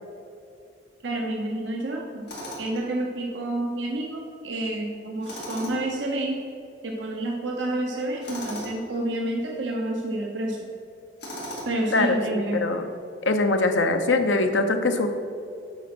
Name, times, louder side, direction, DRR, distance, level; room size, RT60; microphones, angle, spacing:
voice 1, 1.0-2.3 2.6-6.4 6.8-10.6 11.7-12.6, right 1 dB, 75° right, 0 dB, 0.8 m, -29 dB
Tools, 2.3-2.8 5.2-6.0 8.2-8.8 11.2-11.9, equal, 65° left, 2.1 m, -36 dB
voice 2, 11.9-12.9 13.2-15.1, left 2 dB, 80° left, 6 dB, 0.7 m, -23 dB
8.0 x 5.2 x 6.0 m, 2.5 s
head